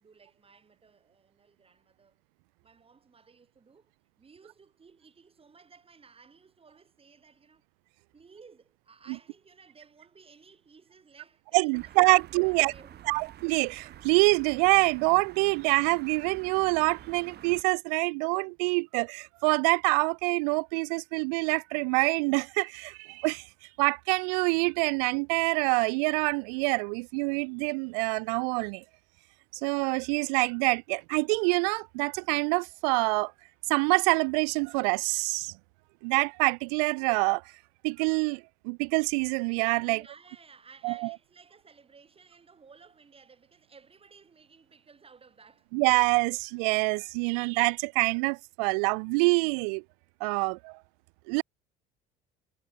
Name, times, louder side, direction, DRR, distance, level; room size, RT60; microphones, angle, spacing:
voice 1, 0.0-2.1 2.6-3.9 4.2-7.6 8.1-13.2 39.8-45.7, right 5 dB, 30° right, 4.5 m, -56 dB
voice 2, 11.5-12.7 13.1-23.4 23.8-28.8 29.6-33.3 33.7-35.5 36.0-37.4 37.8-40.0 40.8-41.1 45.7-49.8 50.2-50.8 51.3-51.4, right 34 dB, 80° right, 0.5 m, -26 dB
sound 1, 11.7-17.6, right 12 dB, 55° right, 2.5 m, -49 dB
supercardioid pair, 75°, 20 cm